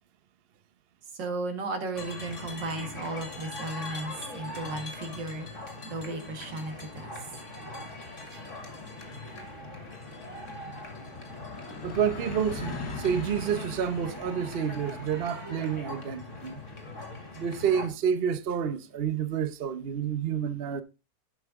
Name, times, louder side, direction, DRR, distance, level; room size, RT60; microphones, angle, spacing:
voice 1, 1.1-5.5 5.8-7.1, right 2 dB, 85° right, 2.4 m, -35 dB
sound 1, 2.0-17.9, left 2 dB, 40° left, 2.5 m, -41 dB
sound 2, 7.3-7.4 7.6-19.0, left 5 dB, 70° left, 1.8 m, -44 dB
voice 2, 11.8-16.6 17.3-20.8, right 8 dB, 45° right, 0.8 m, -29 dB
11.5 x 6.7 x 3.7 m
omnidirectional pair, 1.9 m